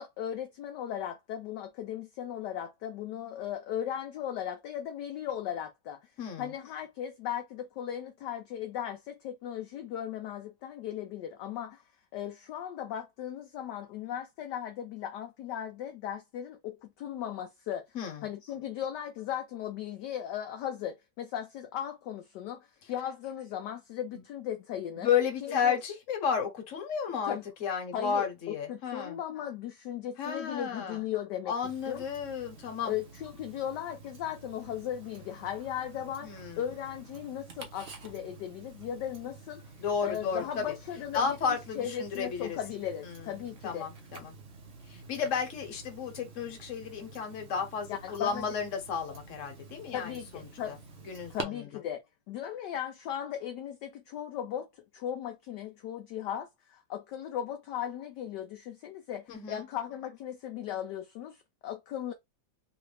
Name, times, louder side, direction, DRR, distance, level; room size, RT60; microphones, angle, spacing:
voice 1, 0.0-6.0 6.4-11.8 12.1-17.8 18.2-25.1 25.4-25.8 27.3-27.4 27.9-31.5 31.9-32.0 32.8-39.6 40.0-43.9 47.9-48.5 49.9-52.0 52.3-54.7 54.9-62.1, left 10 dB, 70° left, 1.1 m, -37 dB
voice 2, 6.2-6.5 17.9-18.3 24.1-24.2 24.9-29.2 30.2-31.0 31.5-32.9 36.2-36.7 39.8-40.7 41.1-42.6 43.0-43.4 43.6-44.3 44.9-50.8 51.1-51.7 59.3-59.7, left 7 dB, 50° left, 1.1 m, -33 dB
Tick-tock, 31.6-51.4, right 4 dB, 65° right, 0.6 m, -49 dB
3.1 x 2.5 x 3.2 m
omnidirectional pair, 2.1 m